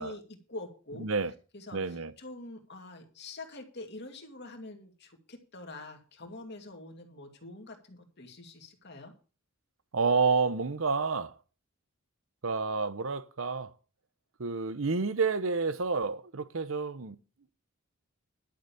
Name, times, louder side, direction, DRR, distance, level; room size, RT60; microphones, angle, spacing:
voice 1, 0.0-1.1 1.5-9.1, left 2 dB, 55° left, 2.6 m, -45 dB
voice 2, 1.0-1.3 1.7-2.1 9.9-11.3 12.4-13.7 14.4-17.2, right 4 dB, 75° right, 0.9 m, -29 dB
11.5 x 6.7 x 7.1 m
head